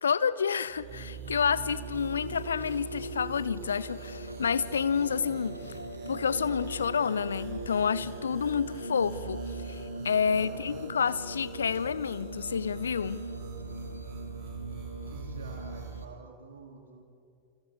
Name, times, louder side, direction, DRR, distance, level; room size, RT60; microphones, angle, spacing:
voice 1, 0.0-5.6 6.1-13.2, left 6 dB, 70° left, 0.5 m, -29 dB
sound 1, 0.7-16.0, right 8 dB, 40° right, 3.7 m, -46 dB
sound 2, 0.8-16.1, right 1 dB, 85° right, 1.6 m, -41 dB
voice 2, 10.3-10.8 15.1-17.0, right 4 dB, 65° right, 2.9 m, -47 dB
29.5 x 29.0 x 3.6 m
figure-of-eight pair, 90°, 0 cm